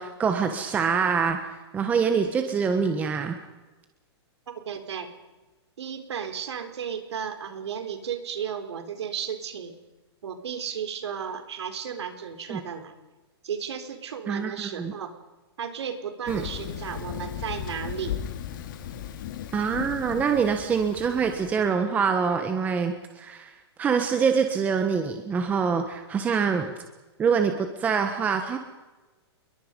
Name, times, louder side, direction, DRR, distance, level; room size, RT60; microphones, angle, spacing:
voice 1, 0.0-1.4 1.7-3.3 12.5-12.6 14.3-14.5 14.8-14.9 16.3-16.5 19.5-23.5 23.8-26.7 27.2-28.6, right 6 dB, 10° right, 6 dB, 1.3 m, -25 dB
voice 2, 4.7-5.1 5.8-9.7 10.2-12.9 13.4-15.1 15.6-18.2, right 7 dB, 80° right, 6 dB, 4.1 m, -34 dB
Thunder, 16.3-21.7, left 10 dB, 45° left, 3.0 m, -36 dB
28.5 x 22.5 x 5.4 m, 1.1 s
hypercardioid pair, 170°, 14 cm